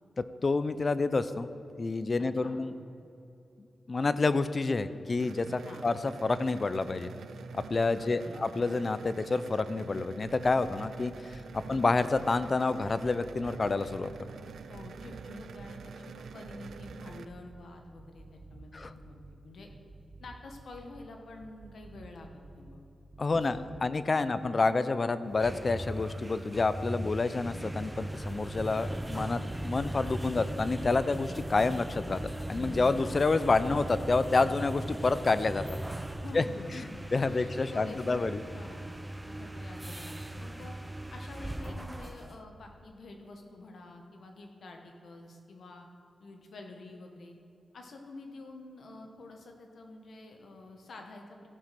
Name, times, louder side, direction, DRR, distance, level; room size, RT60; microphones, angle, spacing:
voice 1, 0.4-1.5 1.8-2.7 3.9-7.1 7.5-14.1 18.7-18.9 23.2-35.6 36.3-36.4 36.7-36.8 37.1-38.4, left 3 dB, 40° left, 13 dB, 0.5 m, -28 dB
voice 2, 2.2-2.6 5.6-5.9 8.0-8.4 11.6-11.8 14.7-19.7 20.2-22.8 23.3-23.9 24.3-24.5 36.2-38.2 38.5-38.9 39.3-40.8 41.1-45.9 46.2-47.3 47.7-51.5, left 2 dB, 70° left, 3 dB, 1.3 m, -48 dB
sound 1, 5.2-17.3, right 6 dB, 85° right, 0.4 m, -46 dB
sound 2, 10.7-10.8 11.1-12.5 12.8-14.2 14.5-15.9 16.3-17.7 18.0-19.4 19.7-21.1 21.4-22.8 23.1-23.8, right 3 dB, 40° right, 0.8 m, -51 dB
sound 3, 25.3-42.4, right 1 dB, 10° right, 0.5 m, -39 dB
15.0 x 5.1 x 5.9 m, 2.7 s
cardioid pair, 85°, 0 cm